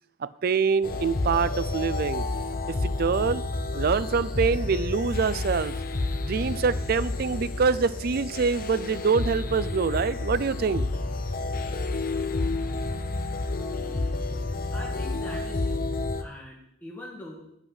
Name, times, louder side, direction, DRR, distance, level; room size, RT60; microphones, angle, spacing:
voice 1, 0.2-2.3 2.7-3.4 3.7-5.7 6.2-10.9, right 5 dB, 50° right, 15 dB, 0.4 m, -25 dB
sound 1, 0.8-16.2, left 2 dB, 50° left, 0.7 m, -30 dB
voice 2, 14.7-15.9 16.2-17.5, left 1 dB, 10° left, -5 dB, 1.6 m, -42 dB
8.0 x 5.6 x 7.8 m, 0.75 s
head